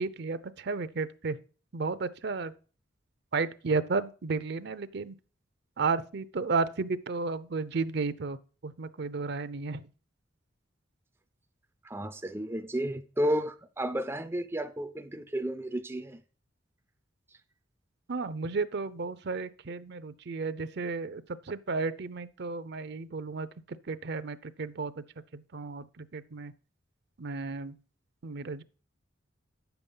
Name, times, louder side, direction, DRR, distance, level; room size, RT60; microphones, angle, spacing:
voice 1, 0.0-1.4 1.7-2.5 3.3-5.1 5.8-8.4 8.6-9.9 18.1-25.0 25.3-26.5 27.2-27.8 28.2-28.6, right 4 dB, 55° right, 0.6 m, -33 dB
voice 2, 11.8-16.2, equal, 10° right, 0.4 m, -32 dB
9.0 x 7.1 x 5.4 m
head